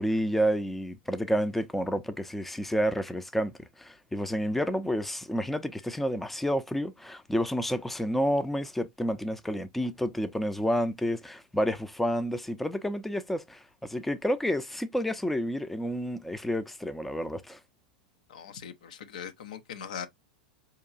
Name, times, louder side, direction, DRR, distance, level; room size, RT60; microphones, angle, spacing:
voice 1, 0.0-17.6, equal, 5° left, 0.4 m, -30 dB
voice 2, 18.3-20.1, left 8 dB, 70° left, 0.5 m, -40 dB
4.5 x 2.8 x 2.4 m
hypercardioid pair, 95°, 4 cm